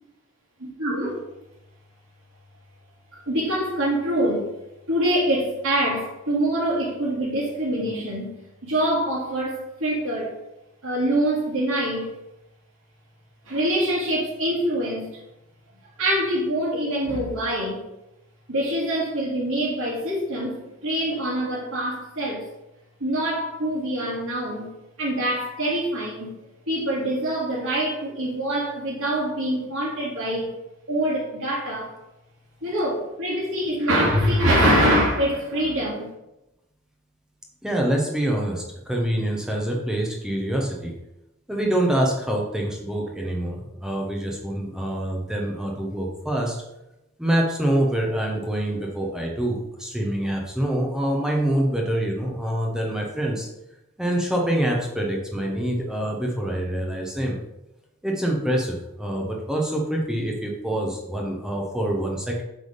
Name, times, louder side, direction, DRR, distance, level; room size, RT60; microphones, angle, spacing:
voice 1, 0.6-1.2 3.1-4.5 4.9-8.4 8.6-10.4 10.8-12.2 13.5-15.2 16.0-17.8 18.5-22.5 23.0-24.7 25.0-26.3 26.7-30.6 30.9-32.0 32.6-36.1, right 1 dB, 80° right, -8 dB, 2.0 m, -24 dB
voice 2, 37.6-40.9 41.5-46.6 47.2-53.5 54.0-57.4 58.0-62.4, right 1 dB, 5° right, -1 dB, 0.9 m, -25 dB
7.9 x 3.5 x 5.1 m, 0.91 s
head